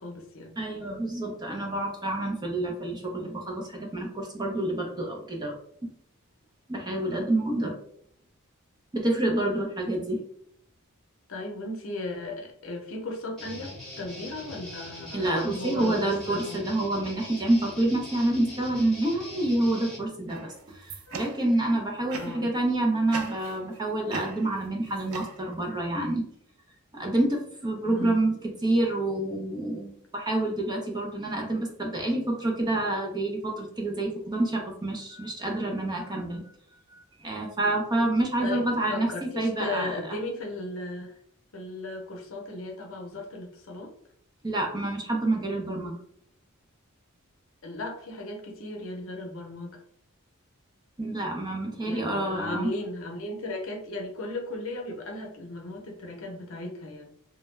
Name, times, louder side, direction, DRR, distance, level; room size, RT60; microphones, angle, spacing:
voice 1, 0.0-0.5 9.5-9.6 11.3-16.6 21.1-21.3 22.2-22.5 27.8-28.1 38.4-41.2 41.5-43.9 47.6-49.8 51.8-57.1, left 2 dB, 65° left, 1 dB, 0.6 m, -36 dB
voice 2, 0.6-5.5 5.8-5.9 6.7-7.7 8.9-10.2 15.1-26.3 26.9-36.4 36.9-40.2 44.4-45.9 51.0-52.7, right 1 dB, 20° right, 1 dB, 0.4 m, -28 dB
Guitar, 13.4-20.1, left 1 dB, 5° left, 0.8 m, -42 dB
sound 1, 20.3-21.6 22.1-22.6 23.1-23.8 24.1-25.8, right 5 dB, 80° right, 0.4 m, -41 dB
2.2 x 2.0 x 3.1 m, 0.66 s
head